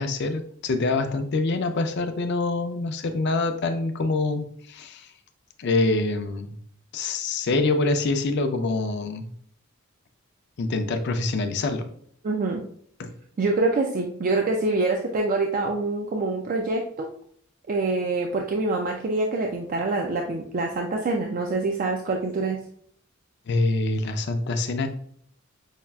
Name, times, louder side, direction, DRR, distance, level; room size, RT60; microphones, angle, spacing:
voice 1, 0.0-5.1 5.6-6.6 6.9-9.3 10.6-11.9 13.0-13.1 23.5-24.9, left 3 dB, 55° left, 7 dB, 0.4 m, -25 dB
voice 2, 12.2-12.6 13.4-17.1 17.7-22.6, right 3 dB, 40° right, 2 dB, 0.3 m, -25 dB
5.5 x 2.4 x 2.2 m, 0.62 s
head